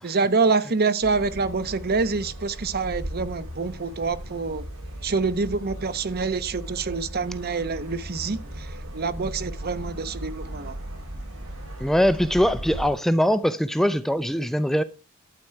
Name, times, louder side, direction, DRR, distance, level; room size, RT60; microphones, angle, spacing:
voice 1, 0.0-4.6 5.0-10.7, right 4 dB, 45° right, 0.9 m, -26 dB
sound 1, 1.0-12.9, right 1 dB, 75° right, 4.9 m, -37 dB
voice 2, 11.8-14.8, equal, ahead, 0.4 m, -22 dB
12.0 x 4.6 x 7.6 m
head